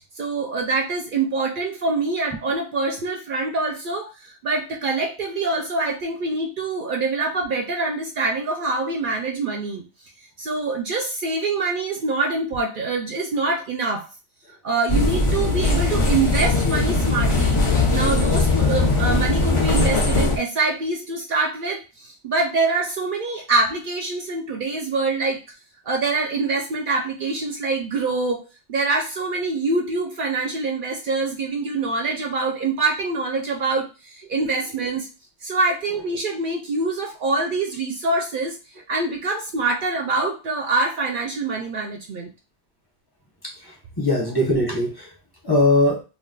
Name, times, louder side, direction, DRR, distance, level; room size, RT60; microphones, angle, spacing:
voice 1, 0.2-9.8 10.4-14.1 14.6-17.6 17.9-25.4 25.9-35.1 35.4-38.6 38.9-42.3, right 3 dB, 60° right, 1 dB, 0.6 m, -25 dB
sound 1, 14.9-20.4, left 3 dB, 40° left, 0.4 m, -20 dB
voice 2, 17.8-18.1 44.0-45.1 45.4-46.0, left 1 dB, 25° left, -3 dB, 0.8 m, -20 dB
2.4 x 2.3 x 3.7 m, 0.31 s
omnidirectional pair, 1.2 m